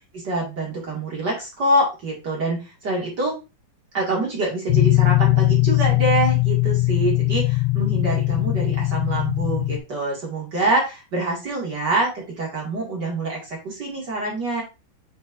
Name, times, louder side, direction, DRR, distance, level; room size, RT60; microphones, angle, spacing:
voice 1, 0.1-3.4 3.9-14.6, right 2 dB, 35° right, -3 dB, 1.8 m, -25 dB
sound 1, 4.7-9.8, left 20 dB, 85° left, 2.2 m, -20 dB
9.0 x 4.5 x 2.6 m, 0.28 s
omnidirectional pair, 4.8 m